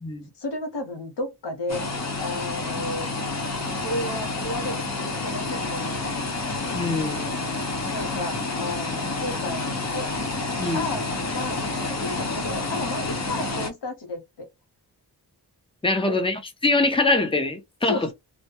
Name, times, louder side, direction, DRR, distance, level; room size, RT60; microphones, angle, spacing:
voice 1, 0.4-1.9 2.2-3.1 3.8-6.2 7.9-10.1 10.7-14.5 16.1-16.2 17.9-18.1, left 2 dB, 85° left, 0.8 m, -33 dB
sound 1, 1.7-13.7, left 3 dB, 40° left, 0.9 m, -29 dB
voice 2, 6.7-7.3 10.6-10.8 15.8-18.1, left 2 dB, 15° left, 0.7 m, -23 dB
2.2 x 2.1 x 2.8 m
wide cardioid pair, 50°, 41 cm